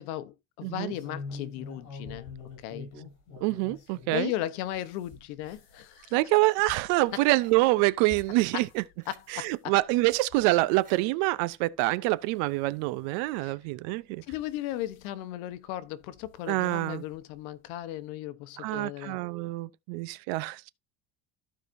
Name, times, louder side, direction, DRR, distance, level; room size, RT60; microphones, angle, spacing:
voice 1, 0.0-2.3 2.6-2.9 4.1-6.2 8.5-8.6 9.1-9.7 13.4-13.5 14.3-19.2, left 13 dB, 90° left, 1.1 m, -36 dB
voice 2, 0.6-0.9 3.4-4.3 6.1-8.8 9.3-14.2 16.5-17.0 18.6-20.7, right 20 dB, 65° right, 0.6 m, -26 dB
sound 1, 0.9-4.2 4.7-8.8 9.2-9.6 10.1-10.4 10.7-11.0 11.6-11.7 12.1-12.2 13.3-13.4 14.2-15.0 16.1-16.3 16.7-16.8 17.1-17.2, left 4 dB, 50° left, 5.8 m, -45 dB
sound 2, 6.3-7.6 8.1-8.2 8.7-8.8 9.0-9.2 10.0-10.2 10.8-11.0 11.5-11.6, right 5 dB, 20° right, 1.3 m, -55 dB
14.5 x 4.9 x 2.6 m
cardioid pair, 170°, 41 cm